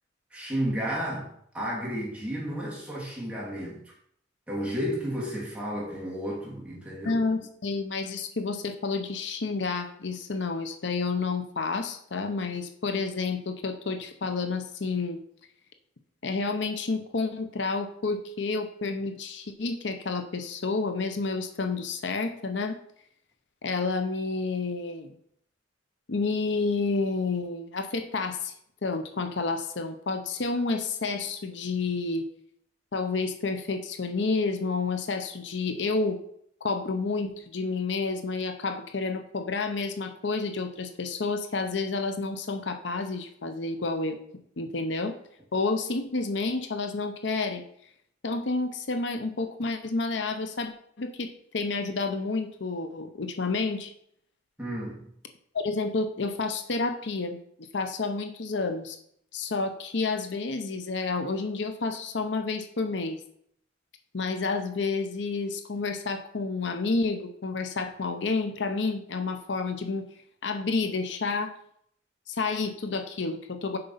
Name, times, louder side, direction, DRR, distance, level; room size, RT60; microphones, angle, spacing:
voice 1, 0.3-1.3 1.5-3.8 4.5-7.2 54.6-55.1, equal, 5° right, -5 dB, 2.6 m, -32 dB
voice 2, 7.0-15.2 16.2-22.8 23.6-25.1 26.1-28.5 28.8-32.2 32.9-36.2 36.6-44.2 44.6-45.1 45.5-47.6 48.2-50.7 51.0-53.9 55.5-59.0 59.3-63.2 64.1-70.1 70.4-71.6 72.3-73.8, left 3 dB, 70° left, 7 dB, 0.8 m, -30 dB
6.8 x 5.3 x 5.6 m, 0.67 s
head